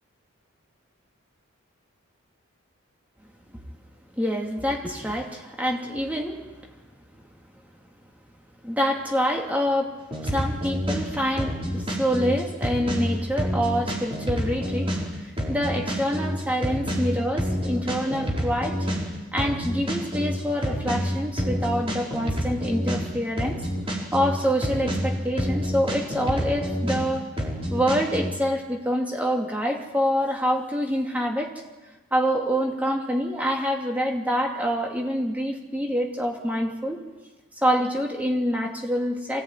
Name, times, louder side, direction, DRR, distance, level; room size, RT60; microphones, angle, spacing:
voice 1, 4.2-6.5 7.2-7.3 8.6-9.9 10.2-18.9 19.3-23.6 24.1-27.3 27.7-31.5 32.1-37.0 37.6-39.4, equal, 5° right, 0 dB, 2.7 m, -26 dB
sound 1, 10.1-28.3, equal, 25° right, 4.9 m, -28 dB
24.5 x 18.0 x 9.5 m, 1.2 s
head